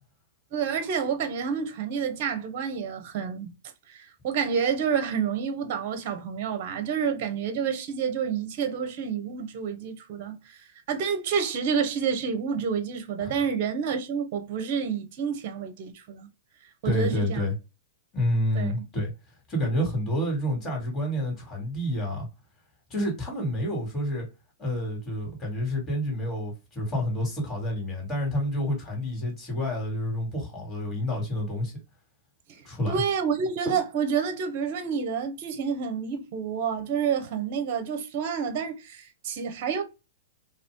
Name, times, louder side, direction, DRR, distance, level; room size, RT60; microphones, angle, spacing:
voice 1, 0.5-3.5 3.9-10.6 10.9-16.3 16.8-17.4 18.5-18.8 32.5-39.8, right 6 dB, 50° right, 0.7 m, -29 dB
voice 2, 16.8-17.5 18.1-19.1 19.5-22.3 22.9-24.3 24.6-31.8 32.6-33.0, left 1 dB, 25° left, 2.2 m, -29 dB
2.8 x 2.5 x 3.5 m
hypercardioid pair, 110°, 0 cm